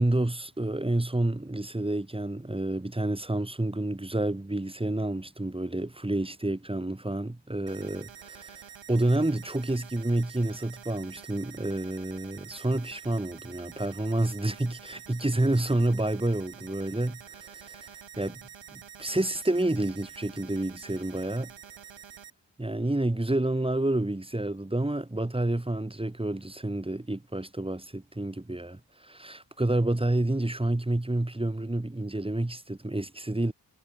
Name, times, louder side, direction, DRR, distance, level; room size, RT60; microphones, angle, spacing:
voice 1, 0.0-18.4 18.7-21.5 22.6-33.5, right 1 dB, 10° right, 1.6 m, -29 dB
sound 1, 7.7-22.3, right 8 dB, 85° right, 1.4 m, -48 dB
wide cardioid pair, 110°, 44 cm